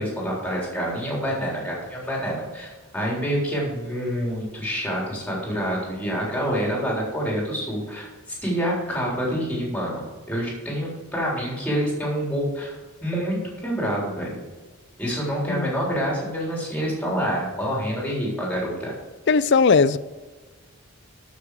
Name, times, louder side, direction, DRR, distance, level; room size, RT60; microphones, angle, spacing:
voice 1, 0.0-14.4 15.0-18.9, equal, 5° left, 3.9 m, -27 dB
voice 2, 19.3-20.0, left 5 dB, 50° left, 0.4 m, -18 dB
13.0 x 6.8 x 4.9 m
head